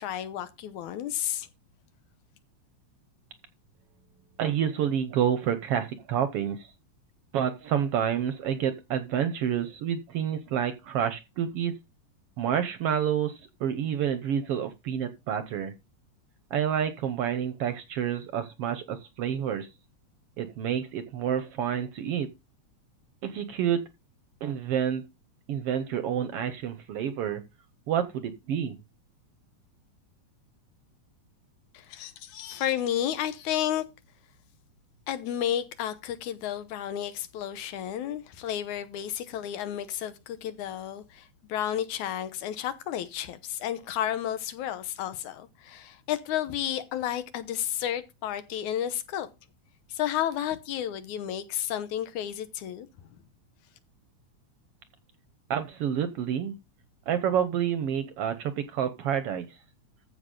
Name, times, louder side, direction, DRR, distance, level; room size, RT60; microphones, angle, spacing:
voice 1, 0.0-1.5 31.7-33.8 35.1-49.3 49.9-52.9, left 11 dB, 85° left, 2.4 m, -32 dB
voice 2, 4.4-6.7 7.3-11.7 12.4-15.7 16.5-19.7 20.4-22.3 23.2-23.8 24.4-25.0 25.5-27.4 27.9-28.8 55.5-56.5 57.1-59.5, right 9 dB, 70° right, 1.5 m, -28 dB
14.5 x 5.7 x 3.8 m
omnidirectional pair, 3.4 m